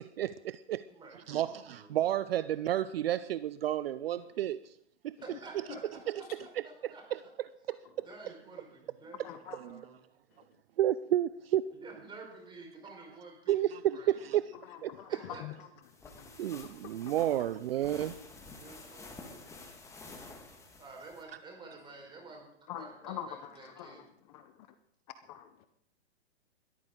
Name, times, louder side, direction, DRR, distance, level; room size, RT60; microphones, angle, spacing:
voice 1, 0.0-0.8 1.3-4.7 5.0-5.1 6.8-7.2 7.7-8.1 9.5-9.8 10.8-11.6 13.5-14.4 14.8-14.9 16.4-18.1, right 12 dB, 55° right, 0.6 m, -31 dB
voice 2, 0.9-1.9 5.2-6.3 6.6-7.3 8.0-10.0 11.7-14.2 15.1-15.4 18.6-19.4 20.8-24.0, right 3 dB, 15° right, 4.7 m, -50 dB
voice 3, 9.2-9.6 14.7-15.7 16.2-16.7 19.3-19.4 22.7-24.7 25.2-25.7, left 10 dB, 35° left, 0.9 m, -45 dB
sound 1, 15.8-21.2, left 3 dB, 10° left, 1.8 m, -50 dB
21.0 x 13.5 x 3.8 m
hypercardioid pair, 135°, 35 cm